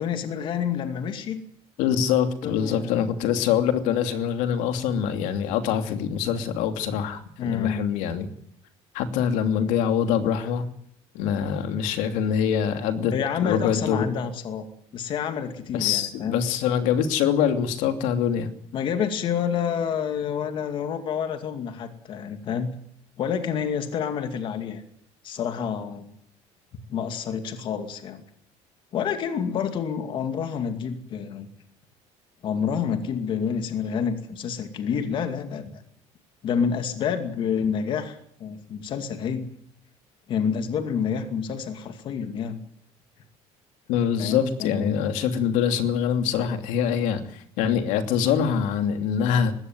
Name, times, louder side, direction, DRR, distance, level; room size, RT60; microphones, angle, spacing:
voice 1, 0.0-1.4 2.4-3.0 7.4-7.8 13.1-14.6 14.9-16.5 18.7-22.8 23.2-24.8 25.2-26.1 26.9-28.2 28.9-31.5 32.4-35.8 36.4-39.5 40.3-42.6 44.2-45.0, left 7 dB, 40° left, 7 dB, 2.4 m, -28 dB
voice 2, 1.8-8.3 8.9-10.6 11.1-13.1 13.4-14.1 15.7-18.5 43.9-49.5, left 8 dB, 75° left, 8 dB, 2.8 m, -24 dB
21.0 x 16.5 x 9.5 m, 0.66 s
cardioid pair, 170°, 13 cm